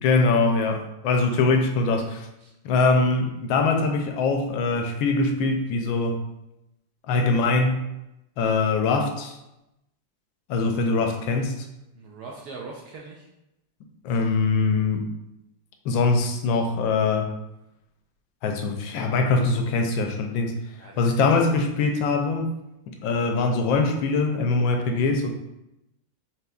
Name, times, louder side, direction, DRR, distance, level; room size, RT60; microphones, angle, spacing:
voice 1, 0.0-2.3 2.6-6.2 7.1-7.9 8.4-9.4 10.5-11.6 14.0-15.1 15.8-17.3 18.4-20.5 21.0-22.5 23.0-25.3, left 3 dB, 80° left, 4 dB, 1.3 m, -22 dB
voice 2, 11.9-13.3 20.8-21.6, right 4 dB, 75° right, -2 dB, 0.9 m, -41 dB
5.8 x 3.0 x 2.3 m, 0.89 s
omnidirectional pair, 2.1 m